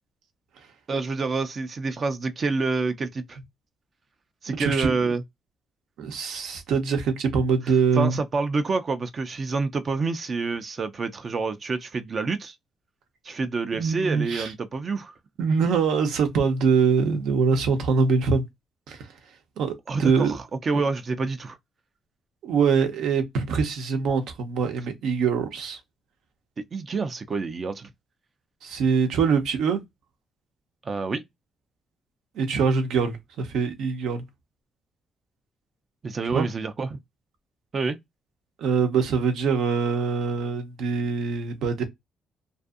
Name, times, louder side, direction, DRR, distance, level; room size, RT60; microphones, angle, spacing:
voice 1, 0.9-3.4 4.4-5.2 7.6-12.6 13.2-15.1 19.9-21.6 26.7-27.9 30.8-31.2 36.0-37.0 37.7-38.0, right 4 dB, 40° right, 0.4 m, -28 dB
voice 2, 4.5-4.9 6.0-8.1 13.7-14.5 15.4-18.5 18.9-19.0 19.6-20.3 22.4-25.8 28.6-29.8 32.4-34.2 36.3-36.5 38.6-41.9, right 5 dB, 80° right, 0.7 m, -23 dB
2.6 x 2.4 x 2.4 m
cardioid pair, 90°, 0 cm